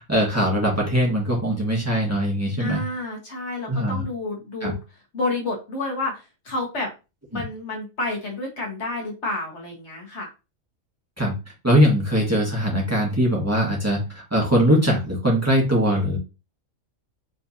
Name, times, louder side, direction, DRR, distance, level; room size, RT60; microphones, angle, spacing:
voice 1, 0.1-2.8 3.7-4.0 4.6-4.7 7.3-7.4 11.2-11.3 11.6-16.2, equal, 10° right, -2 dB, 1.4 m, -21 dB
voice 2, 2.6-4.8 5.1-6.9 7.3-10.3, left 2 dB, 55° left, -1 dB, 1.8 m, -29 dB
5.2 x 3.3 x 2.7 m, 0.28 s
omnidirectional pair, 1.4 m